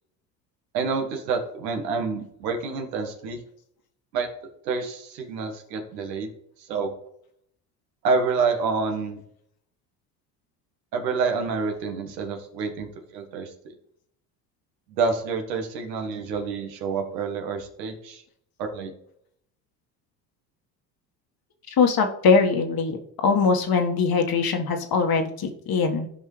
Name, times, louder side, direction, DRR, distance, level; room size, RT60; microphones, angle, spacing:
voice 1, 0.7-3.4 4.1-4.3 4.6-6.3 6.6-6.9 8.0-9.2 10.9-13.7 14.9-18.2 18.6-18.9, right 4 dB, 80° right, 4 dB, 1.7 m, -28 dB
voice 2, 21.7-23.0 23.2-26.1, left 5 dB, 45° left, 4 dB, 1.7 m, -21 dB
15.0 x 5.4 x 3.3 m, 0.71 s
hypercardioid pair, 65°, 50 cm